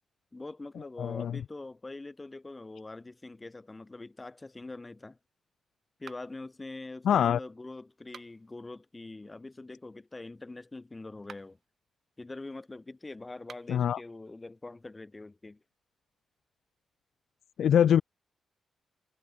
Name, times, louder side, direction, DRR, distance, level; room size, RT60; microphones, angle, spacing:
voice 1, 0.3-5.2 6.0-11.6 12.2-15.6, left 2 dB, 20° left, 3.4 m, -44 dB
voice 2, 1.0-1.4 7.0-7.4 13.7-14.0 17.6-18.0, left 9 dB, 75° left, 0.4 m, -24 dB
sound 1, 6.0-6.5 8.0-8.6 11.1-11.7 13.4-13.9, right 7 dB, 55° right, 1.2 m, -51 dB
wide cardioid pair, 140°, 0 cm